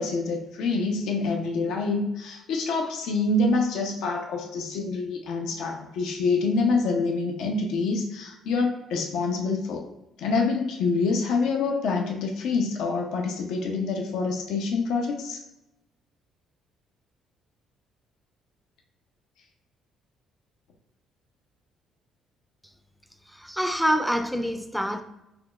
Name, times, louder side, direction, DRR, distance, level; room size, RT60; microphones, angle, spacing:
voice 1, 0.0-9.8 10.2-15.4, left 3 dB, 80° left, 1 dB, 0.5 m, -26 dB
voice 2, 23.3-25.0, equal, ahead, 7 dB, 0.4 m, -26 dB
5.9 x 2.3 x 2.3 m, 0.92 s
cardioid pair, 90°, 0 cm